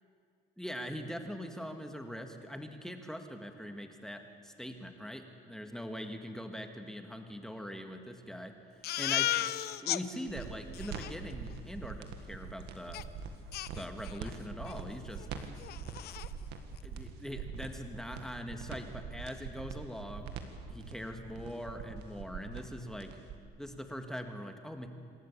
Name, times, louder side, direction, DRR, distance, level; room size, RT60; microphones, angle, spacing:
voice 1, 0.6-8.6 9.0-9.5 9.8-13.1 13.7-15.3 16.8-20.4 20.7-23.2 23.6-24.9, equal, 5° left, 5 dB, 1.8 m, -42 dB
Crying sobbing, 8.8-10.0 10.4-10.5 10.7-11.1 12.9-13.0 13.5-14.3 14.6-14.8 15.2-15.3 15.6-16.3, left 14 dB, 70° left, 0.7 m, -34 dB
sound 1, 10.3-23.4, right 6 dB, 85° right, 1.8 m, -43 dB
27.0 x 13.5 x 8.5 m, 2.2 s
cardioid pair, 110°, 17 cm